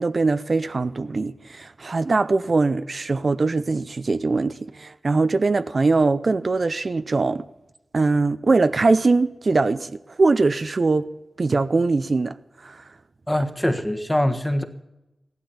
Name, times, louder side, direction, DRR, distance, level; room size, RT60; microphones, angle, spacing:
voice 1, 0.0-7.4 7.9-11.1 11.4-12.3 12.6-12.8, right 3 dB, 55° right, 0.6 m, -21 dB
voice 2, 13.3-14.6, left 1 dB, 10° left, 1.4 m, -23 dB
16.0 x 12.0 x 7.2 m
wide cardioid pair, 85°, 0 cm